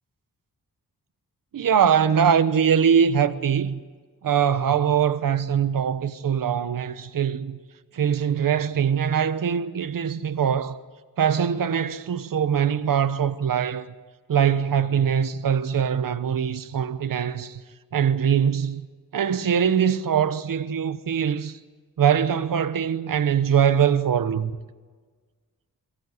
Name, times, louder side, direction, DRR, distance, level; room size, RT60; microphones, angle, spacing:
voice 1, 1.5-3.8 4.2-7.6 7.9-10.8 11.2-13.9 14.3-17.6 17.9-18.9 19.1-21.6 22.0-24.5, right 8 dB, 65° right, 1.0 m, -22 dB
23.0 x 15.5 x 9.6 m
wide cardioid pair, 85°, 36 cm